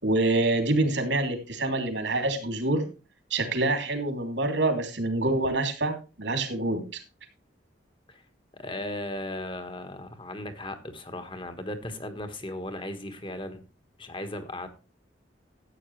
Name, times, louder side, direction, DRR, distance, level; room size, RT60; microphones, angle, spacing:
voice 1, 0.0-2.9 3.3-7.0, right 2 dB, 70° right, 5 dB, 3.1 m, -26 dB
voice 2, 8.5-13.6 14.0-14.7, left 1 dB, 25° left, 9 dB, 1.5 m, -36 dB
14.0 x 8.9 x 3.3 m, 0.31 s
head